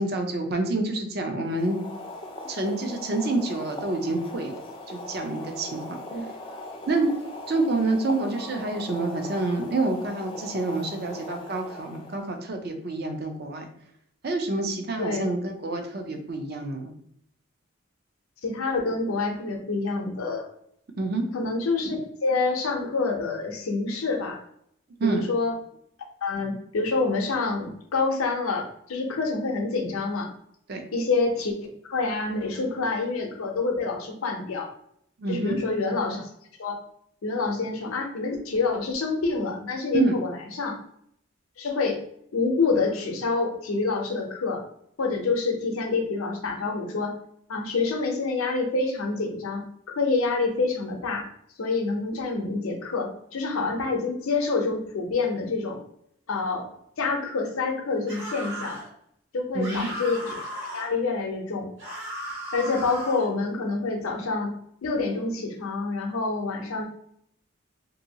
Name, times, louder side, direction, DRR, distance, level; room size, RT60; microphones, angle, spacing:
voice 1, 0.0-1.8 2.5-4.6 4.9-6.0 6.9-7.1 7.5-13.7 14.2-16.9 21.0-21.2 25.0-25.2 30.7-30.8 35.2-35.6 39.9-40.2 59.5-59.9, right 2 dB, 45° right, 4 dB, 0.5 m, -27 dB
Boiling, 1.4-12.4, left 1 dB, 25° left, 0.4 m, -40 dB
voice 2, 18.4-20.5 21.3-22.0 22.2-24.4 25.0-25.5 26.2-30.3 30.9-34.7 35.3-36.3 36.6-36.8 37.2-40.8 41.6-42.0 42.3-44.6 45.0-47.2 47.5-49.7 50.0-51.3 51.6-55.8 56.3-56.7 57.0-58.8 59.3-60.5 60.7-61.7 62.5-64.5 64.8-66.8, left 3 dB, 85° left, 2 dB, 0.6 m, -27 dB
sound 1, 58.1-58.9 59.6-60.9 61.8-63.3, equal, 70° right, 1.4 m, -36 dB
2.7 x 2.6 x 2.7 m, 0.71 s
head